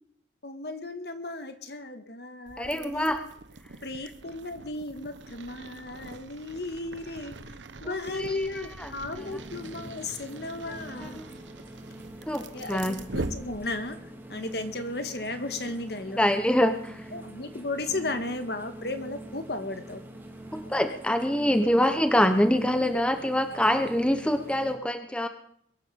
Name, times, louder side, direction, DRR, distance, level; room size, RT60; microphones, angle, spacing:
voice 1, 0.4-3.1 3.8-7.3 7.8-11.4 12.5-14.0 14.3-16.3 17.1-20.0, left 2 dB, 60° left, 8 dB, 1.7 m, -35 dB
sound 1, 2.5-14.0, right 2 dB, 80° right, 1.0 m, -43 dB
voice 2, 2.6-3.2 7.8-9.2 11.0-11.2 12.3-13.0 16.1-17.1 20.5-25.3, equal, 5° left, 8 dB, 0.9 m, -25 dB
sound 2, 9.2-24.7, right 1 dB, 10° right, 2.4 m, -45 dB
22.5 x 8.6 x 7.1 m, 0.66 s
head